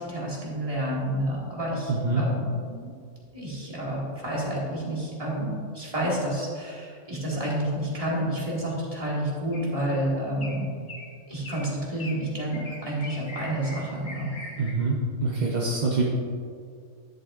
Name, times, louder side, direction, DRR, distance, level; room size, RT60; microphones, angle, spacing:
voice 1, 0.0-2.9 3.3-10.7 11.3-14.3, right 1 dB, 25° right, -5 dB, 1.9 m, -29 dB
voice 2, 1.9-2.3 14.6-16.0, right 3 dB, 40° right, -3 dB, 0.7 m, -25 dB
sound 1, 9.5-9.9 10.4-10.6 10.9-11.1 11.4-11.7 12.0-12.2 12.5-14.7, left 2 dB, 35° left, 1.4 m, -41 dB
10.5 x 8.2 x 2.5 m, 2.2 s
omnidirectional pair, 1.5 m